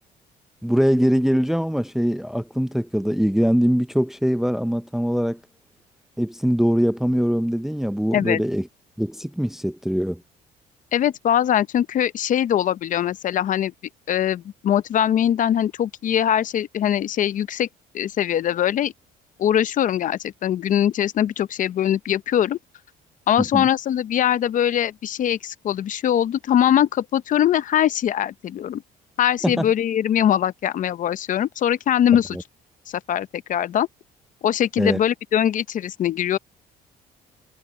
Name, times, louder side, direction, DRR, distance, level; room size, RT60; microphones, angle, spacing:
voice 1, 0.6-5.4 6.2-8.7 9.0-10.2 23.5-23.7 29.4-29.7 32.3-32.4 34.8-35.0, equal, ahead, 0.5 m, -22 dB
voice 2, 10.9-13.7 14.1-17.7 17.9-18.9 19.4-22.6 23.3-28.8 29.2-32.4 32.9-33.9 34.4-36.4, left 10 dB, 50° left, 0.6 m, -22 dB
cardioid pair, 110°, 17 cm